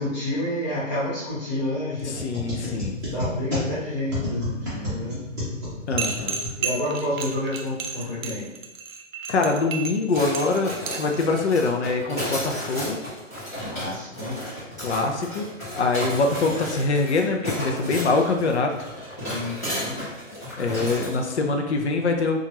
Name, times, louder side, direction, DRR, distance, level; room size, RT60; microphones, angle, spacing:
voice 1, 0.0-2.7 3.1-5.2 6.1-8.5 13.5-14.4 19.2-20.0, left 1 dB, 30° left, -9 dB, 1.5 m, -30 dB
sound 1, 2.0-7.1, left 1 dB, 15° right, 0.8 m, -31 dB
voice 2, 2.1-2.9 5.9-6.4 9.3-13.0 14.8-15.5 15.7-18.7 20.6-22.4, left 3 dB, 60° left, 3 dB, 0.5 m, -24 dB
sound 2, 6.0-11.2, right 5 dB, 85° right, 0.6 m, -31 dB
sound 3, 10.1-21.2, equal, 15° left, 0.6 m, -33 dB
2.8 x 2.4 x 2.8 m, 0.98 s
hypercardioid pair, 170°, 39 cm